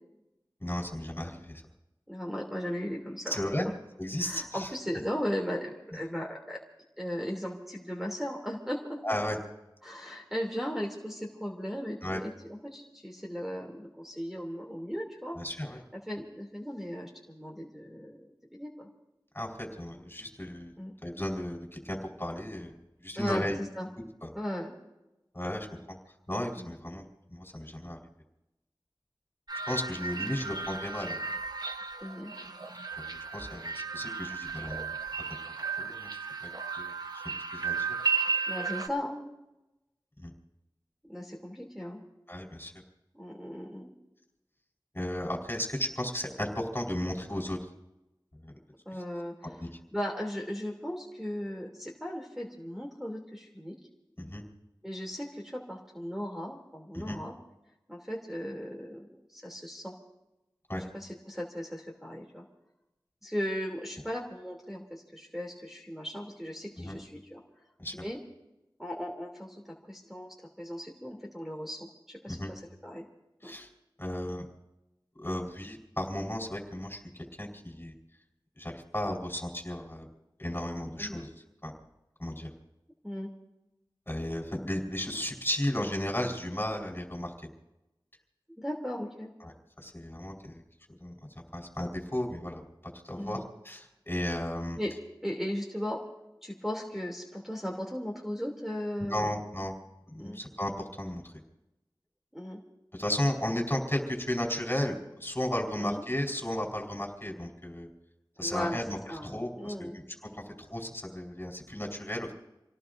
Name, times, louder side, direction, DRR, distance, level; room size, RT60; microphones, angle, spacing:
voice 1, 0.6-1.6 3.3-3.7 4.0-4.7 9.0-9.4 12.0-12.2 15.4-15.8 19.3-20.7 21.0-22.7 23.0-23.6 24.0-24.3 25.3-26.0 26.3-27.0 27.3-28.0 29.7-31.2 33.0-33.1 33.3-34.9 35.8-36.1 36.4-36.5 36.8-37.2 37.5-37.9 40.2-40.3 42.3-42.7 44.9-47.6 48.4-48.5 49.4-49.7 54.2-54.4 56.9-57.2 60.7-60.8 66.8-67.0 67.8-68.0 72.3-72.5 73.4-73.7 74.0-74.4 75.2-77.0 77.4-77.9 78.6-80.1 80.4-81.3 81.6-81.7 82.2-82.5 84.1-87.5 89.4-90.6 91.0-91.2 91.5-92.6 93.0-94.8 99.1-99.7 100.1-101.3 102.9-107.9 108.4-109.9 110.3-110.4 110.7-112.3, left 1 dB, 25° left, 1 dB, 4.6 m, -34 dB
voice 2, 2.1-3.4 4.2-6.6 7.0-9.0 9.8-15.4 16.1-18.9 20.8-20.9 23.1-23.5 23.7-23.9 24.3-24.7 26.5-26.7 32.0-32.3 38.5-39.2 41.0-42.0 43.1-43.9 48.8-49.6 49.9-53.7 54.8-57.3 57.9-59.9 60.9-62.4 63.2-67.4 67.9-68.2 68.8-73.0 73.4-73.5 81.0-81.2 83.0-83.3 88.6-89.3 93.2-93.4 94.8-94.9 95.2-96.0 96.4-99.4 100.2-100.4 102.3-102.6 105.8-106.0 108.4-108.8 109.1-110.0, equal, 5° right, -1 dB, 3.0 m, -37 dB
sound 1, 29.5-38.9, right 5 dB, 55° right, 1.1 m, -34 dB
28.5 x 18.0 x 2.7 m, 0.94 s
wide cardioid pair, 45°, 8 cm